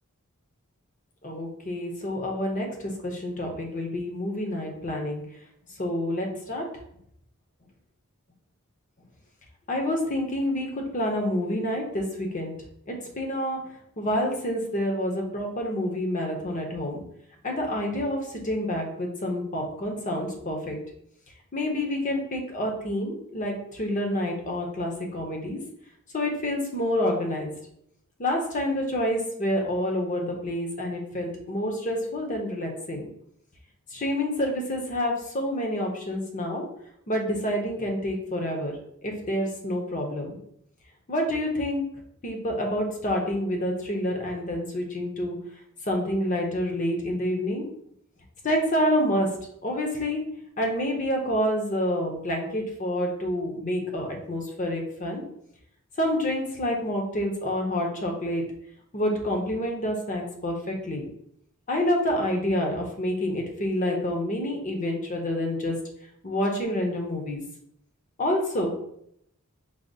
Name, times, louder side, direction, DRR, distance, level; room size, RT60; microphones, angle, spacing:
voice 1, 1.2-5.2 5.8-6.6 9.7-12.5 12.9-13.6 14.0-17.0 17.4-20.8 21.5-25.6 26.1-27.5 28.2-33.1 33.9-36.6 37.1-38.7 39.0-40.4 41.1-41.8 42.2-45.4 45.9-47.6 48.4-49.3 49.6-50.2 50.6-55.2 56.0-58.4 58.9-61.1 61.7-65.8 66.2-67.4 68.2-68.7, left 1 dB, 35° left, 1 dB, 0.8 m, -28 dB
4.8 x 2.0 x 4.0 m, 0.71 s
head